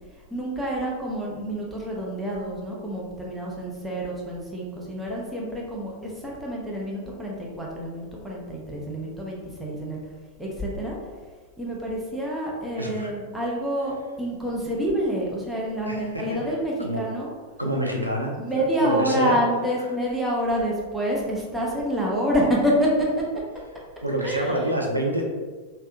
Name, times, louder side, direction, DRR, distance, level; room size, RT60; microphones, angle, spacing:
voice 1, 0.3-10.0 10.4-11.0 11.6-17.3 18.3-23.1 24.2-24.5, equal, 5° right, -4 dB, 0.6 m, -27 dB
voice 2, 12.8-13.1 15.9-17.1 17.6-19.4 24.0-25.2, equal, 90° right, 0 dB, 0.4 m, -27 dB
2.6 x 2.1 x 2.5 m, 1.4 s
figure-of-eight pair, 90°, 0 cm